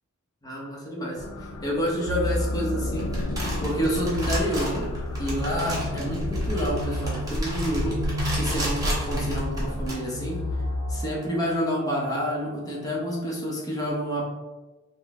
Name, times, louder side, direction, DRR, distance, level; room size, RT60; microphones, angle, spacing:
voice 1, 0.4-3.3 3.6-4.9 5.2-8.0 8.3-10.4 10.9-14.2, equal, 15° left, -4 dB, 0.9 m, -29 dB
sound 1, 1.2-13.1, left 2 dB, 85° left, 0.5 m, -38 dB
sound 2, 2.1-11.0, left 1 dB, 90° right, 0.5 m, -31 dB
sound 3, 3.0-9.9, equal, 15° right, 1.1 m, -31 dB
3.8 x 2.2 x 3.6 m, 1.2 s
head